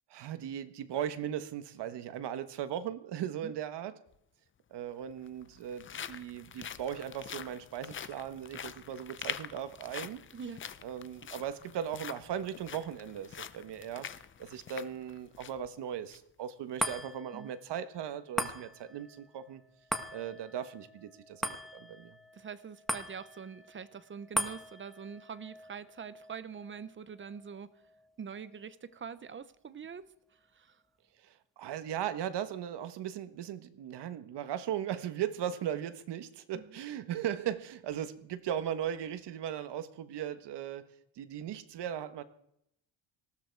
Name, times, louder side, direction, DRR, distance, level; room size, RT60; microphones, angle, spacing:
voice 1, 0.1-3.9 4.7-10.2 10.8-14.1 14.4-19.6 20.1-22.2 31.2-40.9 41.2-42.2, right 10 dB, 55° right, 11 dB, 1.5 m, -38 dB
sound 1, 4.1-4.2 5.1-15.7 16.1-16.2 16.7-16.9, left 8 dB, 25° left, 0.6 m, -45 dB
sound 2, 16.8-29.4 29.8-29.9, equal, ahead, 1.5 m, -41 dB
voice 2, 22.3-27.8 28.2-30.8 36.5-36.8, right 6 dB, 25° right, 15 dB, 0.8 m, -44 dB
19.5 x 16.0 x 4.7 m, 0.75 s
cardioid pair, 150°, 48 cm